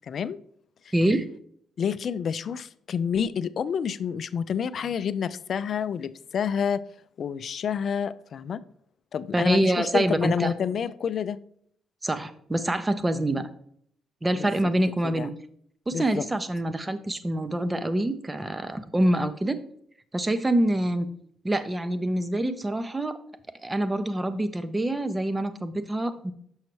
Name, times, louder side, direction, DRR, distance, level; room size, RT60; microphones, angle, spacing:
voice 1, 0.1-0.4 0.9-1.0 1.8-6.8 7.2-8.6 9.1-11.4 14.3-14.5 15.0-15.3 15.9-16.2, left 7 dB, 55° left, 14 dB, 0.3 m, -29 dB
voice 2, 0.9-1.3 9.3-10.5 12.0-13.5 14.2-15.3 15.9-19.6 20.1-21.1 21.4-23.2 23.6-26.3, right 1 dB, 15° right, 12 dB, 0.6 m, -26 dB
6.3 x 5.6 x 3.0 m, 0.65 s
cardioid pair, 90°, 0 cm